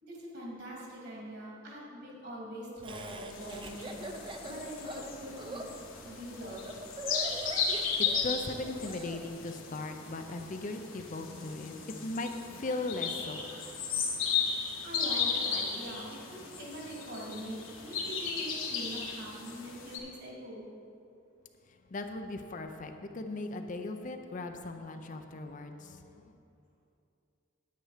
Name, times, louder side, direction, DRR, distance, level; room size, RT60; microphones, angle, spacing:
voice 1, 0.0-4.1 4.4-5.7 6.0-6.6 14.8-20.7, equal, 55° right, -3 dB, 2.7 m, -43 dB
Laughter, 2.8-9.2, right 1 dB, 25° right, 0.6 m, -42 dB
sound 1, 3.3-20.0, left 6 dB, 80° left, 1.6 m, -36 dB
voice 2, 8.0-13.5 21.7-26.2, left 2 dB, 40° left, 6 dB, 0.5 m, -38 dB
9.3 x 9.2 x 5.0 m, 2.6 s
head